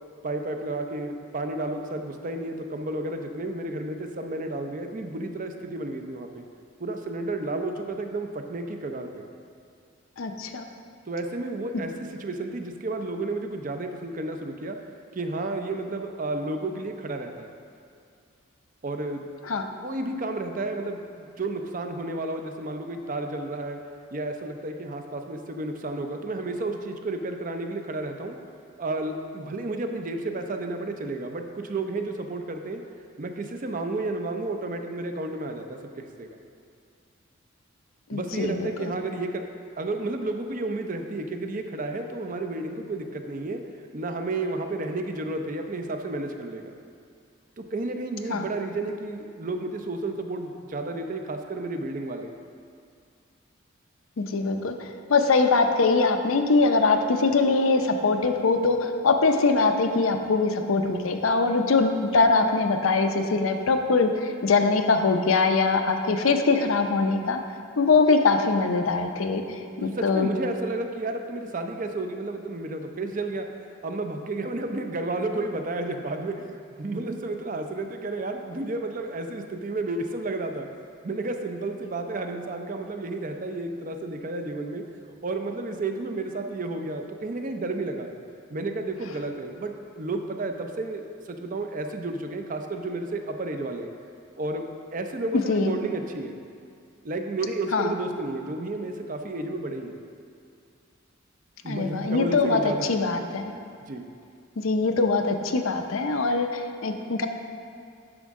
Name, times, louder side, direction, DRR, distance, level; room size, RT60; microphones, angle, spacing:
voice 1, 0.2-6.4 6.8-9.3 11.1-14.8 15.1-17.5 18.8-19.2 19.8-23.8 24.1-28.4 28.8-32.8 33.2-36.4 38.1-39.5 39.8-46.8 47.6-52.3 69.8-73.5 73.8-80.7 81.0-84.8 85.2-88.1 88.5-93.9 94.4-96.4 97.0-100.0 101.6-102.8 103.9-104.1, right 2 dB, 40° right, 5 dB, 0.5 m, -32 dB
voice 2, 10.2-10.6 19.5-19.6 38.1-38.7 48.3-48.4 54.2-54.7 55.1-67.4 67.8-70.3 95.5-95.7 97.7-97.9 101.7-103.4 104.6-107.3, left 3 dB, 85° left, 5 dB, 0.6 m, -22 dB
9.8 x 6.2 x 3.6 m, 2.4 s
head